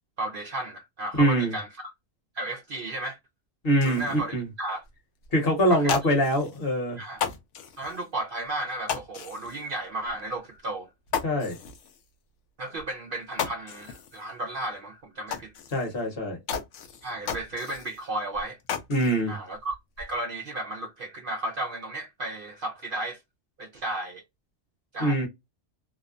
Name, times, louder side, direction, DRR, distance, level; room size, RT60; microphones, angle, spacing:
voice 1, 0.2-1.7 2.3-3.2 3.8-4.8 5.7-5.9 7.0-7.2 7.8-10.9 12.6-15.5 17.0-18.6 19.3-23.2 23.6-24.2 24.9-25.3, right 1 dB, 60° right, 0.6 m, -34 dB
voice 2, 1.1-1.5 3.6-4.5 5.3-7.0 11.2-11.6 15.7-16.4 18.9-19.4 25.0-25.3, right 1 dB, 50° left, 1.2 m, -24 dB
sound 1, 3.7-4.2 4.8-4.9 5.2-5.3 5.7-6.7 7.1-8.0 8.9-9.7 10.1-10.2 10.6-10.7 11.1-12.0 12.8-12.9 13.2-14.2 14.6-14.7 15.3-16.0 16.5-18.0 18.3-19.2 19.6-20.2, left 7 dB, 75° left, 0.9 m, -34 dB
2.8 x 2.0 x 2.4 m
omnidirectional pair, 1.3 m